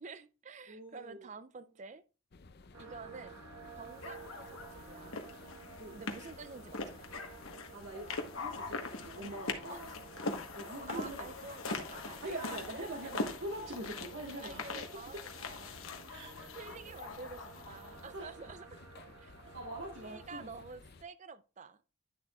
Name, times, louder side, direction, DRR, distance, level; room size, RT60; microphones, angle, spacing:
voice 1, 0.0-2.0 2.8-3.4 3.8-5.3 5.9-7.1 9.7-10.3 10.9-13.0 14.4-15.8 16.5-18.8 19.2-19.3 19.9-21.8, right 4 dB, 35° right, 0.4 m, -49 dB
voice 2, 0.7-1.3 5.8-6.0 7.7-9.9 10.5-11.3 12.2-14.6 15.1-15.2 16.1-16.5 18.1-18.3 19.5-20.5, right 1 dB, 60° right, 1.3 m, -43 dB
sound 1, 2.3-21.0, left 3 dB, 50° left, 0.6 m, -55 dB
sound 2, 2.7-20.3, right 5 dB, 85° right, 1.3 m, -55 dB
sound 3, 4.0-18.1, left 3 dB, 70° left, 1.2 m, -42 dB
10.0 x 6.8 x 2.3 m
head